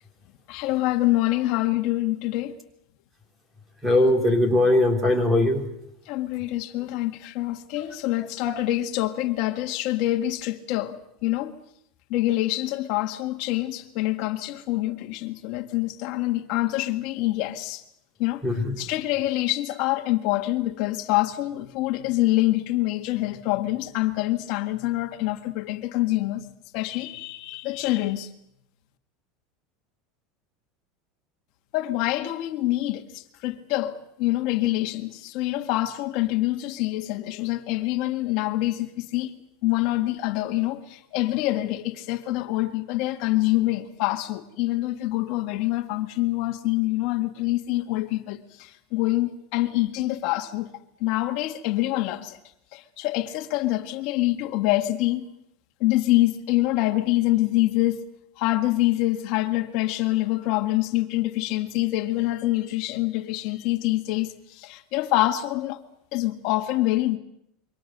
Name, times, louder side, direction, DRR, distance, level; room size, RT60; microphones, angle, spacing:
voice 1, 0.5-2.5 6.1-11.0 11.2-11.5 12.1-17.8 18.2-18.4 18.8-26.4 26.7-28.3 31.7-39.3 39.6-50.7 51.0-52.4 52.7-55.3 55.8-58.0 58.4-65.8 66.1-67.2, left 17 dB, 50° left, 1.7 m, -25 dB
voice 2, 3.8-5.6 18.4-18.7, left 1 dB, 10° right, 3.6 m, -20 dB
27.5 x 24.0 x 6.7 m
supercardioid pair, 165°, 0 cm